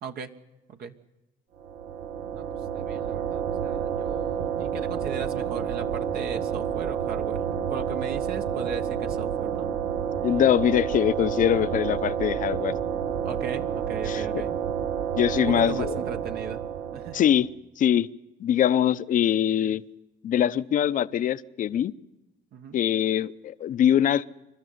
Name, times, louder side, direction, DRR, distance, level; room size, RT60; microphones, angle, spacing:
voice 1, 0.0-0.3 0.7-0.9 2.3-2.5 2.7-7.4 7.7-9.7 13.2-14.5 15.3-16.6 16.9-17.2 22.5-22.8, right 6 dB, 65° right, 6 dB, 1.3 m, -38 dB
sound 1, 1.6-17.5, right 8 dB, 85° right, 1.4 m, -29 dB
voice 2, 10.2-12.7 14.1-14.2 15.2-16.0 17.1-17.5 17.8-18.1 18.4-19.8 20.2-21.9 22.7-24.2, left 10 dB, 50° left, 14 dB, 0.7 m, -23 dB
27.5 x 12.5 x 9.4 m, 1.0 s
cardioid pair, 110°, 17 cm